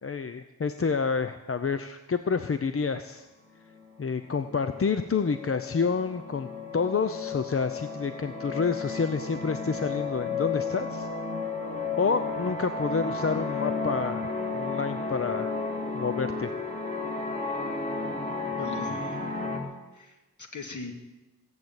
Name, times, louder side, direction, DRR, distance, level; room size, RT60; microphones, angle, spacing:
voice 1, 0.0-3.3 4.0-6.5 6.7-11.1 12.0-15.6 15.9-16.5, left 5 dB, 40° left, 10 dB, 0.7 m, -28 dB
sound 1, 3.8-3.9 4.2-19.6, left 4 dB, 20° left, 2.9 m, -33 dB
voice 2, 18.6-19.4 19.9-20.9, left 3 dB, 55° left, 3 dB, 2.5 m, -40 dB
16.5 x 8.0 x 8.9 m, 1.1 s
wide cardioid pair, 80°, 36 cm